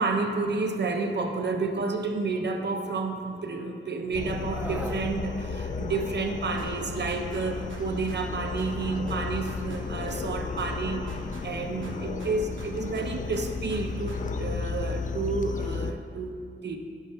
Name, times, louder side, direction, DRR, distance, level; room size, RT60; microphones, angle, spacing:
voice 1, 0.0-11.1 11.4-16.4 16.6-16.8, right 3 dB, 60° right, 4 dB, 0.8 m, -30 dB
sound 1, 4.1-15.9, left 4 dB, 40° left, 0.4 m, -34 dB
Screaming, 4.5-5.1 6.5-6.8, right 1 dB, 10° right, 0.5 m, -39 dB
sound 2, 6.6-8.3 8.6-10.3 10.6-12.3 12.6-14.4, right 1 dB, 90° right, 1.5 m, -43 dB
11.0 x 8.2 x 3.4 m, 2.3 s
wide cardioid pair, 120°, 20 cm